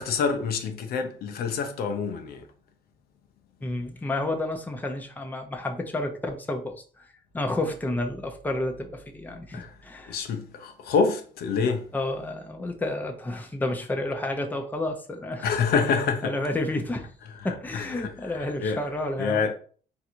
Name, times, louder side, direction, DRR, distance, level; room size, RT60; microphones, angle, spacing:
voice 1, 0.0-2.5 9.5-9.8 10.1-11.9 15.4-16.4 17.7-18.8 19.2-19.5, left 5 dB, 65° left, 0.7 m, -27 dB
voice 2, 3.6-7.1 7.3-10.2 11.9-15.5 16.2-17.1 17.4-19.4, left 2 dB, 10° left, 0.8 m, -30 dB
3.9 x 2.6 x 4.4 m
cardioid pair, 110°, 17 cm